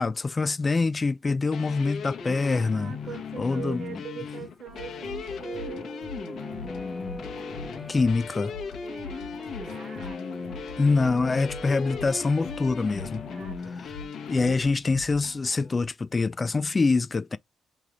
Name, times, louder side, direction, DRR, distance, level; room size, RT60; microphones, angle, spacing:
voice 1, 0.0-2.9 3.4-3.8 7.9-8.5 10.8-13.2 14.3-17.4, left 3 dB, 30° left, 0.3 m, -25 dB
sound 1, 1.5-14.6, left 6 dB, 65° left, 1.2 m, -37 dB
voice 2, 2.7-8.0 8.8-10.9 13.3-13.8, right 8 dB, 50° right, 1.1 m, -43 dB
sound 2, 4.7-15.9, left 3 dB, 80° left, 1.6 m, -44 dB
Guitar, 4.7-13.4, left 1 dB, 10° left, 1.5 m, -43 dB
3.2 x 2.8 x 3.6 m
cardioid pair, 90°, 0 cm